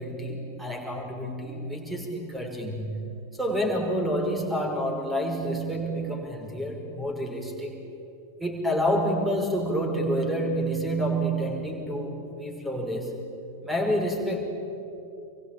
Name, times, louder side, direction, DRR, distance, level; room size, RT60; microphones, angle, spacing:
voice 1, 0.0-3.0 3.3-7.8 8.4-13.2 13.6-14.4, equal, 5° right, 2 dB, 5.7 m, -28 dB
27.5 x 23.5 x 8.9 m, 2.8 s
figure-of-eight pair, 90°, 0 cm